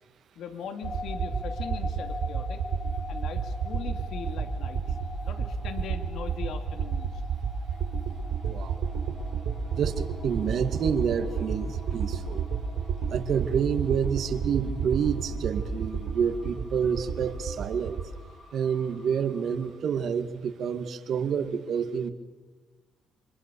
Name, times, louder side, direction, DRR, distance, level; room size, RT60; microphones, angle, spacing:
voice 1, 0.4-2.6 3.1-5.0 5.2-7.2, left 6 dB, 75° left, 7 dB, 2.6 m, -40 dB
sound 1, 0.8-19.8, left 4 dB, 40° left, 5.8 m, -45 dB
sound 2, 0.8-18.1, right 6 dB, 80° right, 5.5 m, -31 dB
voice 2, 8.4-8.8 9.7-12.4 13.1-18.0 18.5-22.1, right 7 dB, 65° right, 10 dB, 2.1 m, -28 dB
29.5 x 25.0 x 7.1 m, 1.2 s
cardioid pair, 90°, 0 cm